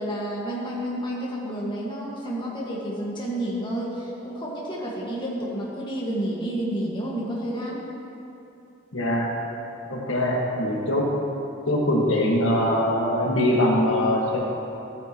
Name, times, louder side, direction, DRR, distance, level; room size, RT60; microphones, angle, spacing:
voice 1, 0.0-7.8, right 1 dB, 25° left, -5 dB, 1.7 m, -30 dB
voice 2, 8.9-9.3 9.8-11.0 11.7-14.4, left 1 dB, 80° left, -3 dB, 1.7 m, -22 dB
14.0 x 9.3 x 3.0 m, 2.8 s
head